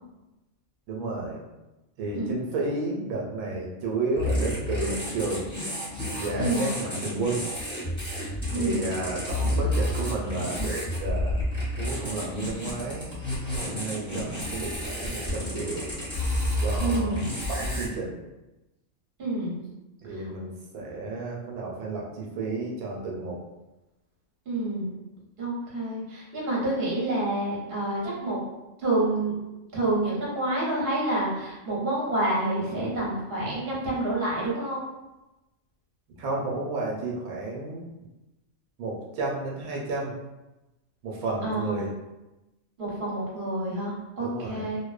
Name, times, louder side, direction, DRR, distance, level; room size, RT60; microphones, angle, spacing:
voice 1, 0.9-1.4 2.0-5.5 6.2-7.5 8.5-11.4 11.8-13.1 13.4-15.9 16.6-17.2 17.5-18.2 20.0-23.4 36.2-37.8 38.8-40.1 41.0-41.9 44.2-44.7, right 2 dB, 80° right, -2 dB, 1.0 m, -31 dB
sound 1, 4.1-17.8, left 1 dB, 5° left, 0.5 m, -30 dB
voice 2, 6.4-6.7 8.5-9.0 16.8-17.2 19.2-19.6 20.1-20.3 24.5-24.9 25.4-28.4 28.8-29.4 29.7-34.8 41.4-41.9 42.8-44.8, right 2 dB, 45° right, -6 dB, 0.9 m, -28 dB
2.6 x 2.0 x 2.3 m, 1.0 s
omnidirectional pair, 1.5 m